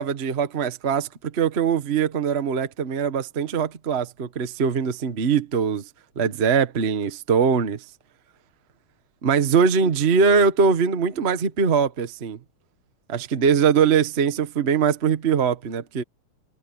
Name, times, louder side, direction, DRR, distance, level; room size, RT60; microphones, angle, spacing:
voice 1, 0.0-5.8 6.1-7.8 9.2-12.4 13.1-16.0, right 6 dB, 80° right, 0.5 m, -22 dB
omnidirectional pair, 3.5 m